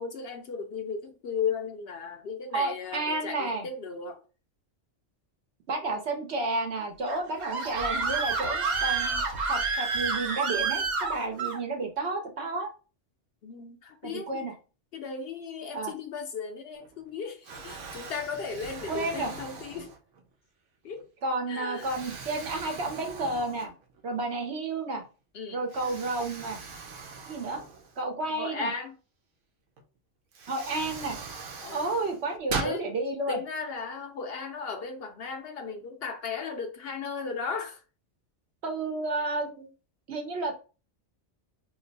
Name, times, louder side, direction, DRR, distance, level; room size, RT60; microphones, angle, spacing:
voice 1, 0.0-4.2 13.4-14.3 14.9-19.9 20.8-21.1 21.5-21.9 25.3-25.6 28.3-28.9 31.6-31.8 32.5-32.9 33.3-37.8, left 5 dB, 65° left, 0.7 m, -36 dB
voice 2, 2.5-3.7 5.7-12.7 14.0-14.5 15.7-15.9 18.9-19.3 21.2-23.7 24.0-25.0 25.5-26.6 27.3-27.6 28.0-28.7 30.5-31.2 31.7-33.4 38.6-39.7 40.1-40.5, right 2 dB, 65° right, 1.0 m, -31 dB
Screaming, 7.1-11.6, right 4 dB, 50° right, 0.6 m, -29 dB
Explosion, 16.7-17.1 17.4-20.3 20.9-21.0 21.8-24.0 24.4-24.5 25.7-28.3 29.8-29.9 30.3-32.8, right 4 dB, 90° right, 1.0 m, -40 dB
2.9 x 2.1 x 3.9 m
omnidirectional pair, 1.2 m